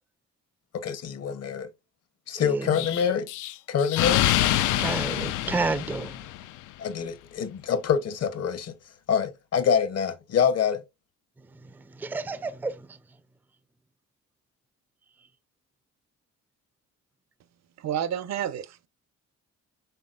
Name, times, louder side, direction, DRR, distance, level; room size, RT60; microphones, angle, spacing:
voice 1, 0.7-1.7 2.3-3.3 3.7-4.3 6.8-8.7 9.1-10.8, left 7 dB, 55° left, 0.9 m, -26 dB
voice 2, 2.4-2.9 4.8-6.2 11.7-13.0, right 3 dB, 5° right, 0.4 m, -31 dB
Explosion, 2.7-6.6, left 14 dB, 80° left, 0.4 m, -26 dB
voice 3, 17.8-18.9, right 9 dB, 65° right, 0.6 m, -30 dB
5.7 x 3.6 x 2.4 m
cardioid pair, 90°, 30 cm